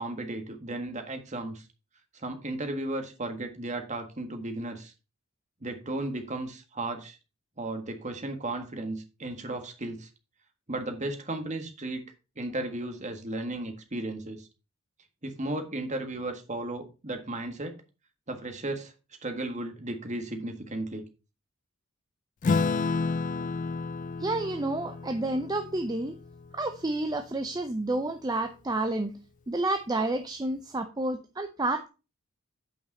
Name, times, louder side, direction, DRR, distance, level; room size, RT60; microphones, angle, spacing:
voice 1, 0.0-1.7 2.1-4.9 5.6-7.2 7.6-10.1 10.7-14.5 15.2-17.8 18.3-18.9 19.2-21.0, right 2 dB, 35° right, 1.6 m, -35 dB
Acoustic guitar / Strum, 22.4-27.3, left 4 dB, 35° left, 0.4 m, -31 dB
voice 2, 24.2-26.2 26.5-29.2 29.5-31.9, right 2 dB, 20° right, 0.6 m, -30 dB
8.8 x 5.3 x 5.2 m
head